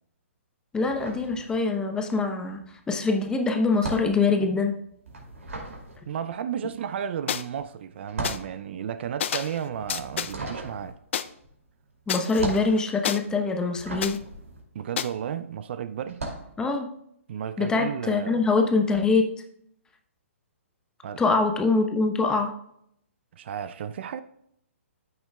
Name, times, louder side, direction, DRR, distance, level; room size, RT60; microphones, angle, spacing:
voice 1, 0.7-2.6 2.9-4.7 12.1-14.2 16.6-16.9 17.6-19.3 21.2-22.5, left 3 dB, 10° left, 0.9 m, -24 dB
sound 1, 0.8-2.0 2.3-15.5 16.0-16.5, right 2 dB, 80° right, 2.6 m, -38 dB
voice 2, 6.1-11.0 14.7-16.3 17.3-18.5 21.0-21.3 23.4-24.2, right 8 dB, 50° right, 0.5 m, -33 dB
sound 2, 7.3-7.4 8.2-8.4 9.2-9.6 9.9-10.3 11.1-11.2 12.1-13.2 14.0-14.2 15.0-15.1, left 9 dB, 60° left, 0.5 m, -29 dB
13.5 x 6.2 x 2.3 m
hypercardioid pair, 135°, 7 cm